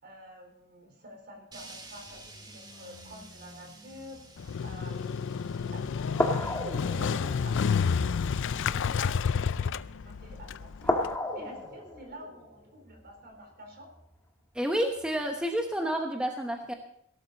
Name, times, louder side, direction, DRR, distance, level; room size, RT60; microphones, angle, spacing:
voice 1, 0.0-4.2 4.6-10.9 11.3-13.9, equal, 50° right, 3 dB, 4.2 m, -49 dB
sound 1, 1.5-11.7, right 1 dB, 20° right, 2.3 m, -51 dB
sound 2, 2.1-3.4 3.9-4.2 5.1-5.2 6.1-9.7 10.2-10.5 10.8-14.3 15.0-15.1, left 1 dB, 10° left, 1.6 m, -35 dB
Motorcycle, 4.4-11.2, left 6 dB, 60° left, 0.4 m, -30 dB
voice 2, 14.5-16.7, equal, 5° right, 2 dB, 1.0 m, -29 dB
17.5 x 12.5 x 4.1 m, 0.70 s
head